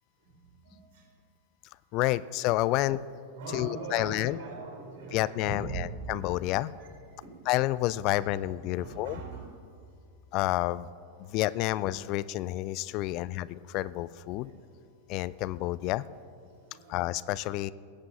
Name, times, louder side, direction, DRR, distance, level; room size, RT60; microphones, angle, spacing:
voice 1, 0.6-1.0 3.4-5.8 7.2-7.4 8.8-9.5 11.2-11.4 14.5-14.6 16.6-17.0, right 4 dB, 55° right, 1 dB, 3.5 m, -40 dB
voice 2, 1.9-3.0 3.5-4.4 5.1-6.7 7.5-9.2 10.3-10.9 11.2-14.5 15.1-16.0 16.9-17.7, left 16 dB, 45° left, 17 dB, 0.4 m, -29 dB
18.5 x 7.5 x 7.1 m, 2.3 s
figure-of-eight pair, 90°, 0 cm